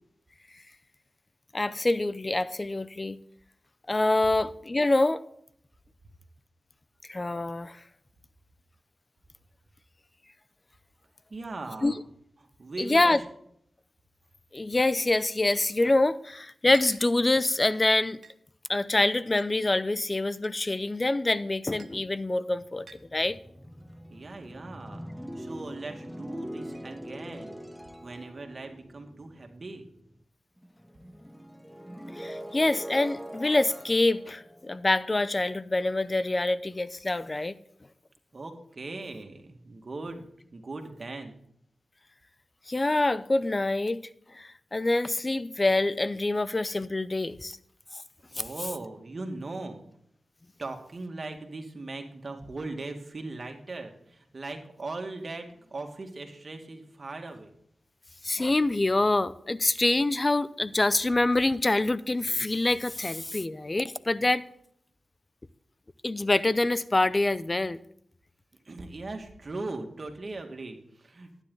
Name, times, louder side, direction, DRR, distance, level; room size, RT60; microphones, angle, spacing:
voice 1, 1.5-3.2 3.9-5.2 7.1-7.8 11.8-12.0 12.8-13.2 14.5-18.2 18.7-23.4 32.2-37.6 42.7-44.0 44.3-47.6 47.9-48.0 48.3-48.4 58.2-64.4 66.0-67.8, left 2 dB, 30° left, 0.6 m, -26 dB
voice 2, 11.3-12.0 12.6-13.2 24.1-25.1 25.4-27.6 28.0-29.8 38.3-40.3 40.5-41.4 48.3-49.8 50.6-57.5 68.7-71.3, right 3 dB, 50° right, 2.1 m, -39 dB
sound 1, 16.7-17.1 18.2-18.3 19.4-19.5 20.4-20.6 21.8-22.0 22.9-23.1, right 5 dB, 70° right, 0.9 m, -48 dB
sound 2, 22.6-30.2 30.6-35.7, equal, ahead, 1.0 m, -43 dB
12.0 x 9.8 x 4.0 m
cardioid pair, 50°, 0 cm